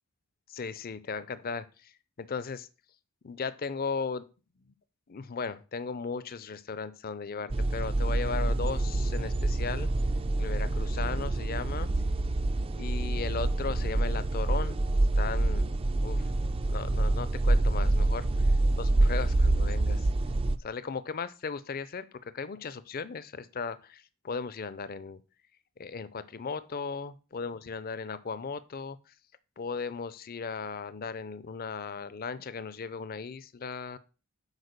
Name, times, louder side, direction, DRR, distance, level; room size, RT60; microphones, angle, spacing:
voice 1, 0.5-1.9 2.2-2.7 3.2-4.3 4.6-4.7 5.1-9.9 10.4-11.9 12.8-14.8 15.1-15.7 16.0-16.3 16.7-18.5 18.8-20.1 20.6-25.2 25.8-29.1 29.6-34.0, left 5 dB, 40° left, 15 dB, 0.5 m, -36 dB
sound 1, 7.5-20.6, right 2 dB, 25° right, 0.4 m, -27 dB
8.1 x 5.1 x 6.6 m, 0.34 s
head